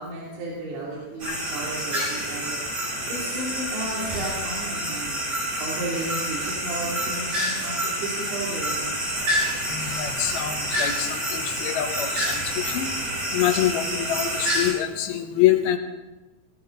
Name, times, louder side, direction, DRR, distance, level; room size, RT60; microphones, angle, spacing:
voice 1, 0.0-2.6 3.1-5.2 5.6-8.8, right 2 dB, 75° right, -5 dB, 5.3 m, -33 dB
sound 1, 1.2-14.7, equal, 45° right, 8.1 m, -28 dB
voice 2, 9.7-12.9 13.3-15.8, left 12 dB, 75° left, 6 dB, 2.6 m, -25 dB
20.0 x 17.5 x 4.0 m, 1.1 s
omnidirectional pair, 5.2 m